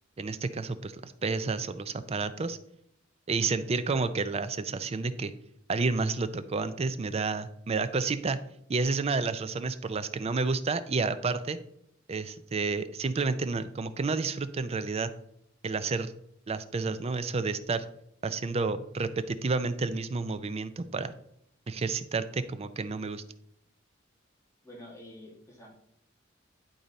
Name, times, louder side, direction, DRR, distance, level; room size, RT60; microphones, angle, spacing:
voice 1, 0.2-2.6 3.3-5.3 5.7-8.4 8.7-11.6 12.1-15.1 15.6-16.1 16.5-17.8 18.2-21.1 21.7-23.2, right 4 dB, 30° right, 12 dB, 0.4 m, -30 dB
voice 2, 24.6-25.7, left 1 dB, 15° left, -3 dB, 2.1 m, -48 dB
10.0 x 3.9 x 4.0 m, 0.72 s
head